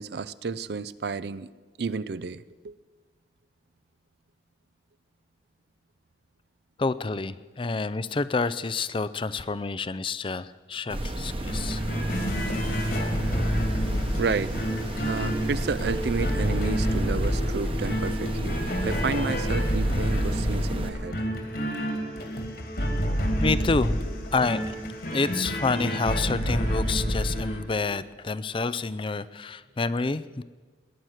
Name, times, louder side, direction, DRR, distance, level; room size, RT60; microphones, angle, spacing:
voice 1, 0.0-1.5 1.8-2.8 14.2-14.6 15.0-21.2, right 4 dB, 65° right, 17 dB, 0.5 m, -31 dB
voice 2, 6.8-11.8 23.4-24.0 24.3-24.8 25.1-30.4, left 3 dB, 30° left, 16 dB, 0.4 m, -28 dB
sound 1, 10.9-20.9, right 1 dB, 30° right, 1.1 m, -32 dB
sound 2, 11.4-27.6, equal, 60° left, 2.3 m, -28 dB
19.5 x 11.0 x 6.4 m, 1.4 s
head